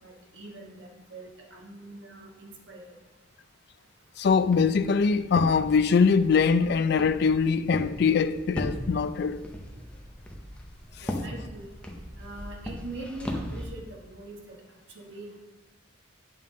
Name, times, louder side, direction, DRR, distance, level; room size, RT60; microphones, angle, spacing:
voice 1, 0.0-2.9 11.0-11.7 12.2-14.6 14.9-15.4, right 2 dB, 70° right, 1.3 m, -43 dB
voice 2, 4.2-9.4 11.0-11.1, left 5 dB, 60° left, 0.3 m, -23 dB
Walk footsteps, 4.3-13.6, left 1 dB, 5° left, 0.8 m, -38 dB
9.2 x 5.4 x 3.8 m
head